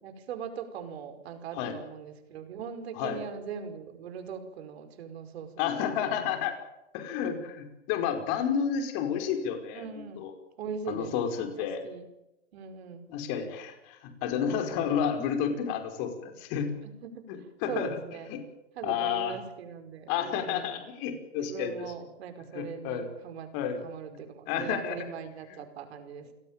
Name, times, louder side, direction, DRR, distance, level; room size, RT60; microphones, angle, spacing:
voice 1, 0.0-5.5 6.0-6.3 9.7-10.2 10.6-11.1 11.4-12.0 12.5-13.1 16.8-17.3 17.7-18.3 18.8-20.8 21.4-23.5 23.8-26.3, right 7 dB, 60° right, 8 dB, 5.2 m, -40 dB
voice 2, 5.6-6.6 6.9-9.9 10.2-10.3 10.9-11.8 13.1-16.7 17.3-18.0 18.3-18.4 18.8-19.4 20.1-21.9 22.5-23.1 23.5-23.8 24.1-24.2 24.5-25.0 25.5-25.6, left 8 dB, 40° left, 6 dB, 5.2 m, -31 dB
29.5 x 17.5 x 9.0 m, 0.90 s
hypercardioid pair, 130°, 36 cm